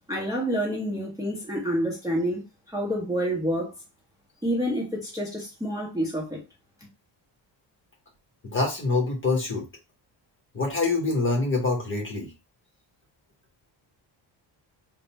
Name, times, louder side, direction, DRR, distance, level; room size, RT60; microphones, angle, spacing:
voice 1, 0.1-2.4 2.7-3.7 4.4-6.4, equal, 5° right, 1.0 m, -28 dB
voice 2, 8.5-9.6 10.5-12.3, left 3 dB, 25° left, 1.2 m, -25 dB
3.7 x 2.2 x 4.1 m
cardioid pair, 155°, 47 cm